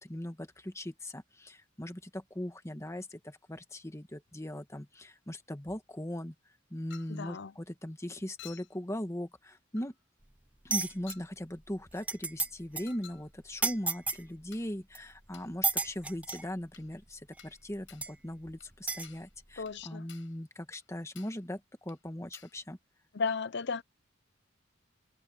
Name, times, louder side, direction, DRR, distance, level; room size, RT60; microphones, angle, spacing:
voice 1, 0.0-6.3 6.7-9.9 10.6-22.8, left 1 dB, 15° left, 1.5 m, -39 dB
Chink clink, 6.9-7.2 8.4-8.8 9.8-9.9 11.1-11.3 12.9-13.3 14.5-14.7 15.3-15.5 16.3-16.5 16.7-16.9 17.4-17.6 17.9-18.1 18.6-18.7 19.0-19.3 19.7-19.8 20.1-20.4 20.7-20.9 21.2-21.4 21.9-22.0 22.3-22.6, left 11 dB, 75° left, 6.2 m, -54 dB
voice 2, 7.1-7.5 19.6-20.1 23.1-23.8, left 5 dB, 60° left, 0.7 m, -34 dB
sound 1, 10.7-11.1 11.7-11.8 12.0-12.5 12.8-12.9 13.6-14.2 14.9-15.0 15.6-16.4 17.4-17.5 18.0-18.1 18.9-19.1, right 3 dB, 5° right, 0.5 m, -31 dB
head